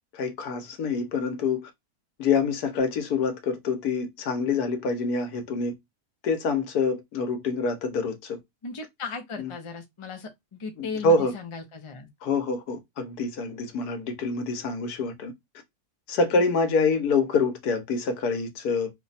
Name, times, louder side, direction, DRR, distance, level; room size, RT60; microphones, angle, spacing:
voice 1, 0.1-1.7 2.2-5.7 6.2-8.4 9.4-9.5 10.8-11.3 12.2-15.3 16.1-18.9, left 4 dB, 80° left, 1.3 m, -26 dB
voice 2, 8.6-12.1 16.2-16.4, left 5 dB, 40° left, 0.4 m, -37 dB
3.1 x 2.2 x 4.0 m
omnidirectional pair, 1.6 m